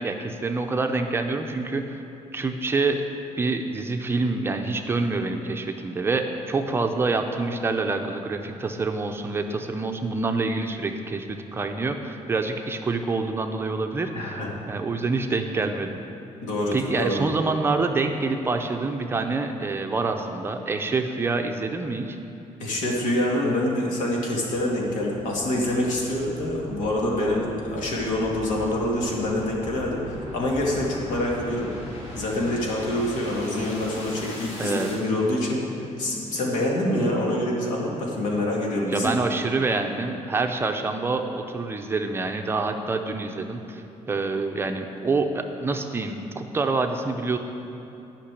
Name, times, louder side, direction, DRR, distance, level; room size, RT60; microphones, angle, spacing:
voice 1, 0.0-2.0 2.3-3.0 3.4-16.0 16.7-22.2 34.6-34.9 38.9-47.4, right 3 dB, 20° right, 4 dB, 0.5 m, -26 dB
voice 2, 14.1-14.5 16.4-17.2 22.6-31.7 32.1-39.1, left 1 dB, 85° left, -2 dB, 2.4 m, -26 dB
sound 1, 24.3-35.0, left 1 dB, 55° left, 2.9 m, -40 dB
11.5 x 5.9 x 8.4 m, 2.9 s
cardioid pair, 175°, 13 cm